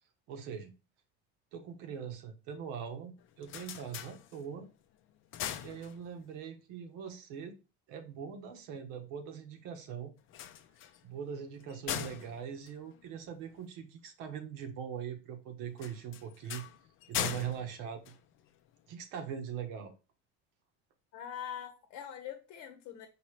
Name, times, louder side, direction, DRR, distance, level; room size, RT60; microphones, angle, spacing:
voice 1, 0.3-0.7 1.5-4.7 5.6-7.5 7.9-10.1 11.0-16.6 17.1-18.1 18.9-19.9, right 8 dB, 70° right, 1.1 m, -41 dB
sound 1, 3.2-4.7 5.1-6.4 10.2-13.7 15.8-18.8, left 10 dB, 40° left, 0.5 m, -41 dB
voice 2, 21.1-23.1, left 9 dB, 60° left, 0.9 m, -43 dB
5.0 x 2.9 x 3.1 m
cardioid pair, 135°, 31 cm